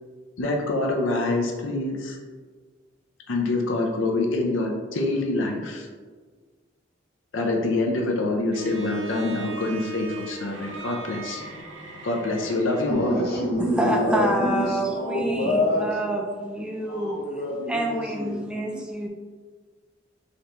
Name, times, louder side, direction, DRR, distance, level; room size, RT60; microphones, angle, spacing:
voice 1, 0.4-2.2 3.3-5.9 7.3-11.4 12.0-13.1, left 2 dB, 90° left, 0 dB, 0.6 m, -26 dB
Bowed string instrument, 8.5-13.4, right 2 dB, 80° right, 0.5 m, -38 dB
voice 2, 12.7-15.9 16.8-18.4, left 1 dB, 55° left, -2 dB, 0.9 m, -26 dB
voice 3, 13.6-17.2 17.7-19.1, right 1 dB, 5° right, 0 dB, 0.3 m, -27 dB
3.9 x 2.9 x 3.3 m, 1.5 s
head